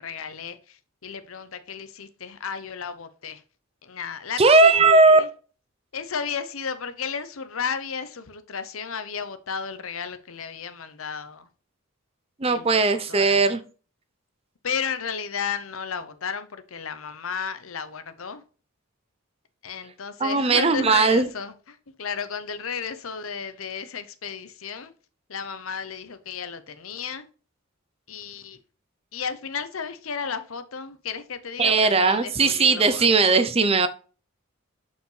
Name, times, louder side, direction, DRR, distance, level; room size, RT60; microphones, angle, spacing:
voice 1, 0.0-3.4 3.8-4.7 5.2-5.3 5.9-11.5 12.4-13.4 14.6-18.4 19.6-24.9 25.3-27.3 28.1-28.6 29.1-33.1, left 6 dB, 75° left, 0.8 m, -33 dB
voice 2, 4.4-5.2 12.4-13.6 20.2-21.3 31.6-33.9, right 3 dB, 25° right, 0.6 m, -18 dB
6.7 x 5.5 x 3.2 m
head